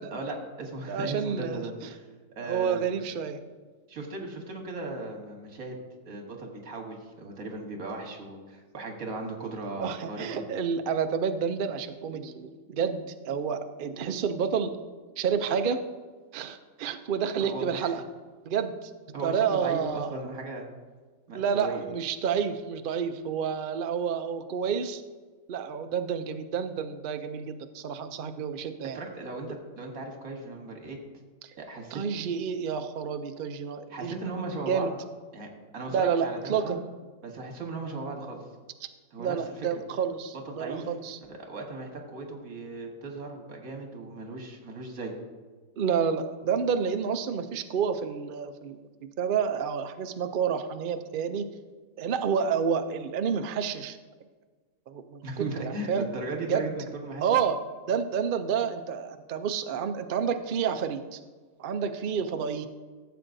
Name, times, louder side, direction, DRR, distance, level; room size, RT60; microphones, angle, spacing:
voice 1, 0.1-2.0 2.4-2.8 3.9-5.8 6.1-10.3 17.4-17.9 19.1-20.7 21.3-21.8 28.9-31.0 31.6-32.0 33.9-34.9 35.3-36.8 37.2-38.4 39.1-39.4 40.3-40.9 41.3-45.1 55.2-57.3, right 3 dB, 80° right, 2 dB, 1.8 m, -37 dB
voice 2, 0.9-1.6 2.4-3.4 9.8-14.8 15.2-15.8 16.3-18.0 18.4-18.9 19.2-20.2 21.3-25.0 25.5-29.0 31.9-34.1 34.7-34.9 35.9-36.8 39.2-41.2 45.8-51.5 52.0-54.0 54.9-56.1 56.5-56.7 57.2-57.6 57.9-61.2 61.6-62.7, right 7 dB, 60° right, 8 dB, 0.5 m, -29 dB
14.5 x 7.6 x 2.6 m, 1.4 s
omnidirectional pair, 1.4 m